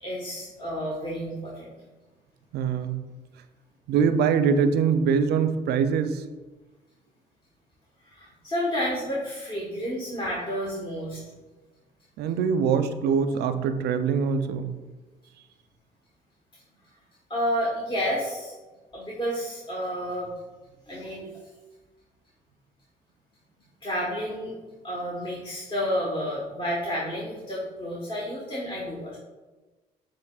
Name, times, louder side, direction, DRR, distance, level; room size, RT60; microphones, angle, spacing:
voice 1, 0.0-1.7 8.0-11.2 17.3-18.5 18.9-20.3 20.9-21.3 23.8-24.5 24.8-29.2, equal, 30° left, -5 dB, 1.1 m, -30 dB
voice 2, 2.5-3.0 3.9-6.2 12.2-14.7, right 6 dB, 70° right, 10 dB, 0.4 m, -23 dB
7.0 x 2.9 x 2.3 m, 1.2 s
supercardioid pair, 60°, 17 cm